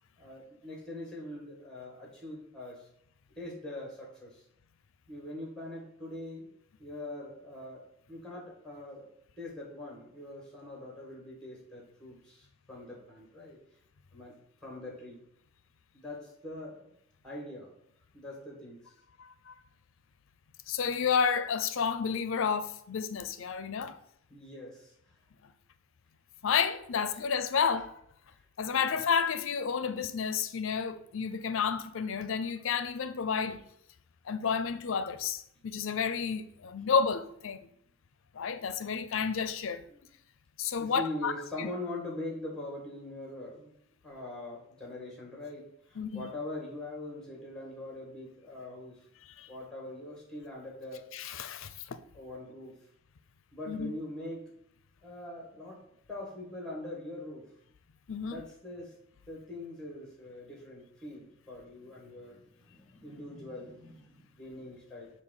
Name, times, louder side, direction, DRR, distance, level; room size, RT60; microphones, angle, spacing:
voice 1, 0.2-2.9 3.3-4.4 5.1-6.5 6.8-9.1 9.4-13.6 14.1-15.2 15.9-16.9 17.2-17.7 18.1-18.9 24.3-24.9 28.3-28.4 28.7-28.9 33.5-33.6 39.9-40.1 40.8-43.7 44.0-49.0 49.5-51.1 52.1-52.8 53.5-54.5 55.0-55.8 56.1-57.5 58.2-59.0 59.3-65.1, left 1 dB, 5° left, 1.9 m, -43 dB
voice 2, 19.2-19.6 20.7-24.0 26.4-27.9 28.6-33.6 34.3-37.7 38.3-39.8 40.6-41.3 41.6-41.7 46.0-46.3 49.4-49.5 51.1-52.0 53.7-53.9 58.1-58.4, left 6 dB, 70° left, 0.5 m, -31 dB
6.3 x 2.7 x 5.5 m
head